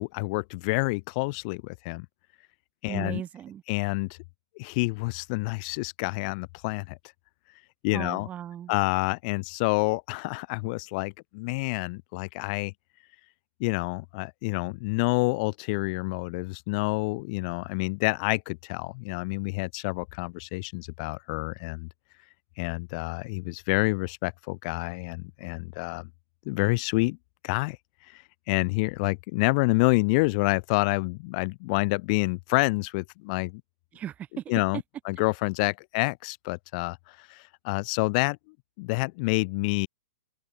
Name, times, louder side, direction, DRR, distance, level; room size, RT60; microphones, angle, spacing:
voice 1, 0.0-2.1 2.8-3.2 3.7-4.2 4.6-7.0 7.8-8.3 8.7-12.7 13.6-21.9 22.6-26.1 26.5-27.2 27.4-27.8 28.0-33.6 34.5-38.4 38.8-39.9, left 27 dB, 35° left, 0.4 m, -28 dB
voice 2, 2.9-3.6 7.9-8.7 33.9-34.4, right 10 dB, 20° right, 0.8 m, -36 dB
open air
figure-of-eight pair, 110°, 8 cm